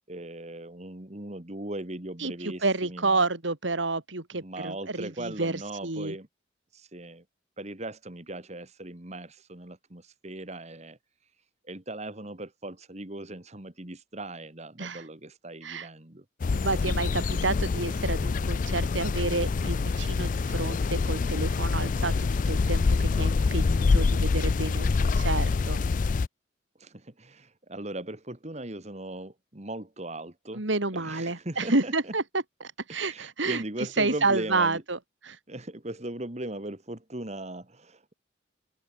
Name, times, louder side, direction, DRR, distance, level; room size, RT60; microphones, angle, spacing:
voice 1, 0.0-3.3 4.4-6.3 6.7-7.2 7.6-11.0 11.6-16.3 26.8-30.7 30.9-32.1 32.9-34.8 35.5-38.1, right 1 dB, 35° right, 2.0 m, -39 dB
voice 2, 2.2-6.1 14.8-15.0 15.6-15.9 16.5-25.8 30.5-35.4, right 3 dB, 75° right, 2.6 m, -30 dB
sound 1, 16.4-26.3, left 4 dB, 45° left, 0.4 m, -26 dB
head